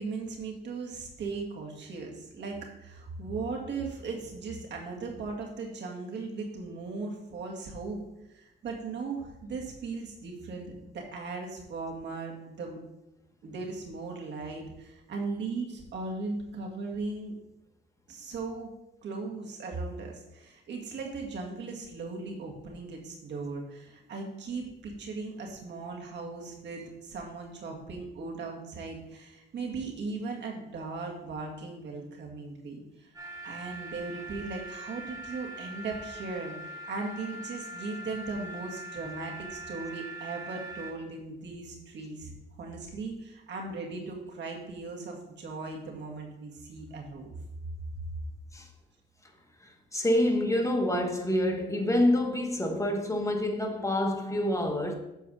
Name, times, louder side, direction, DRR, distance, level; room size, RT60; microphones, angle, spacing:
voice 1, 0.0-8.0 8.3-12.8 13.4-17.3 18.1-18.7 19.0-33.1 33.4-47.3, right 3 dB, 60° right, 2.0 m, -38 dB
sound 1, 33.1-40.9, right 1 dB, 15° right, 2.6 m, -42 dB
voice 2, 49.6-54.9, left 1 dB, 15° left, 1.3 m, -27 dB
7.2 x 4.6 x 6.3 m
cardioid pair, 90°, 20 cm